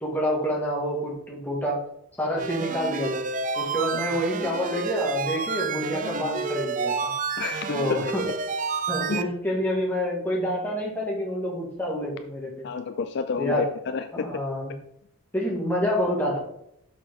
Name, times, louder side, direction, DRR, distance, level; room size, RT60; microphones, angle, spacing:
voice 1, 0.0-1.8 2.2-3.2 3.6-7.1 7.7-8.3 8.9-12.7 13.4-13.7 14.1-14.7 15.3-16.4, equal, 10° left, -4 dB, 1.7 m, -27 dB
sound 1, 2.4-9.2, right 5 dB, 35° right, 0.3 m, -30 dB
voice 2, 7.4-7.8 9.1-9.2 12.6-13.6 13.9-14.3, left 5 dB, 50° left, 9 dB, 0.3 m, -30 dB
6.4 x 5.9 x 3.7 m, 0.75 s
head